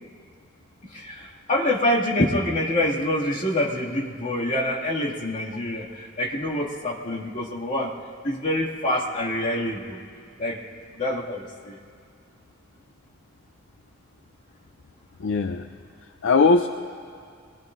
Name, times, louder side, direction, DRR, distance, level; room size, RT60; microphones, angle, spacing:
voice 1, 0.9-7.9 8.2-10.0 10.4-10.6 11.0-11.8, left 1 dB, 40° left, -5 dB, 2.3 m, -26 dB
voice 2, 15.2-15.7 16.2-16.7, left 4 dB, 65° left, 6 dB, 0.5 m, -19 dB
25.5 x 19.0 x 2.6 m, 2.2 s
head